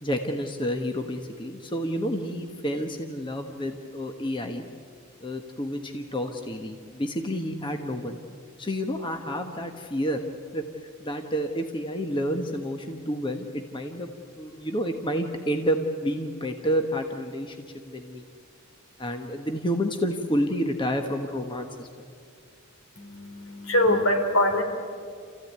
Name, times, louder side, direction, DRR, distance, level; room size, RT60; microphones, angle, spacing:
voice 1, 0.0-4.6 5.2-8.2 8.6-10.2 10.5-14.1 14.4-18.2 19.0-21.9, equal, 25° left, 4 dB, 1.2 m, -29 dB
voice 2, 23.0-24.6, left 1 dB, 75° left, 4 dB, 3.6 m, -23 dB
28.5 x 15.0 x 9.5 m, 2.3 s
head